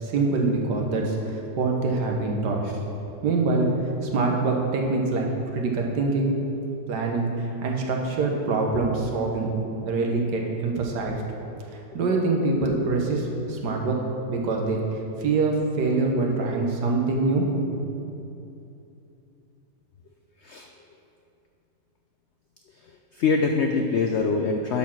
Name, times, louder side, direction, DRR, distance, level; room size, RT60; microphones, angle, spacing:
voice 1, 0.0-2.6 3.2-3.7 4.0-5.3 5.5-6.3 6.9-9.5 9.8-11.2 11.9-14.0 14.3-14.8 15.2-17.8, right 3 dB, 80° right, 0 dB, 1.7 m, -24 dB
voice 2, 23.1-24.8, left 4 dB, 85° left, 4 dB, 0.6 m, -24 dB
11.5 x 4.4 x 5.8 m, 2.7 s
omnidirectional pair, 1.8 m